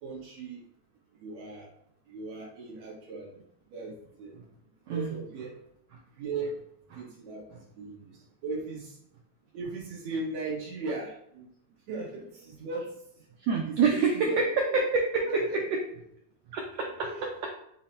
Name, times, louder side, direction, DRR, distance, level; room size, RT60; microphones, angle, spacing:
voice 1, 0.0-0.6 1.2-1.7 2.1-4.3 4.9-5.5 6.2-6.6 6.9-7.5 7.8-9.0 9.5-11.2 11.9-14.4 14.7-14.8 15.3-15.6 17.1-17.5, right 3 dB, 70° right, -3 dB, 2.1 m, -38 dB
voice 2, 4.9-5.2 6.9-7.0 7.5-7.6 13.4-15.8 16.5-17.1, right 4 dB, 85° right, 0 dB, 1.4 m, -27 dB
5.3 x 2.1 x 4.2 m, 0.75 s
omnidirectional pair, 3.4 m